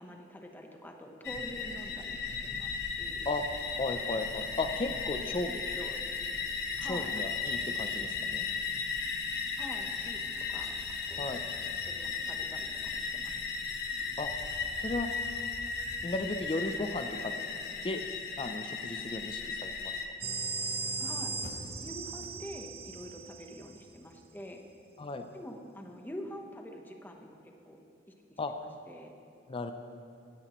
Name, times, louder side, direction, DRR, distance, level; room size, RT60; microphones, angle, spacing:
voice 1, 0.0-3.3 5.4-6.0 6.8-7.1 9.6-11.3 11.8-13.6 21.0-21.4 21.8-24.6 25.3-27.8 28.3-29.1, equal, 10° left, 2 dB, 0.9 m, -46 dB
sound 1, 1.2-20.1, left 5 dB, 60° left, 0.9 m, -36 dB
voice 2, 3.8-5.5 6.8-8.5 11.2-11.4 14.2-14.3 14.8-15.1 16.0-17.3 17.8-18.0 18.4-19.9 25.0-25.3 28.4-28.5 29.5-29.7, left 2 dB, 30° left, 7 dB, 0.5 m, -35 dB
sound 2, 20.2-23.9, right 4 dB, 30° right, 0.8 m, -37 dB
17.0 x 10.0 x 3.0 m, 2.5 s
head